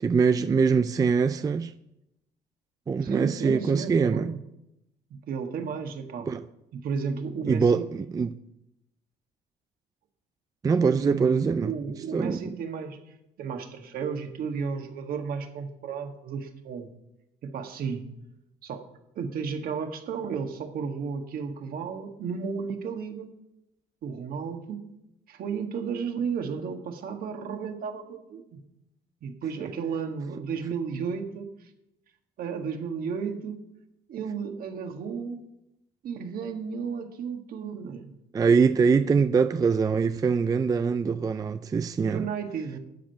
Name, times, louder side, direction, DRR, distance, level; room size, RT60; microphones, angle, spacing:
voice 1, 0.0-1.7 2.9-4.3 6.3-6.5 7.4-8.4 10.6-11.7 12.1-12.4 38.3-42.3, right 5 dB, 20° right, 0.4 m, -23 dB
voice 2, 3.0-4.4 5.1-6.3 6.7-7.9 10.8-13.0 13.4-16.9 17.4-18.1 18.6-18.9 19.2-23.3 24.0-24.8 25.3-28.6 29.2-31.5 32.4-33.6 34.1-35.4 36.0-38.1 42.0-42.8, right 6 dB, 60° right, 1.7 m, -33 dB
12.5 x 5.2 x 7.9 m
cardioid pair, 110°, 17 cm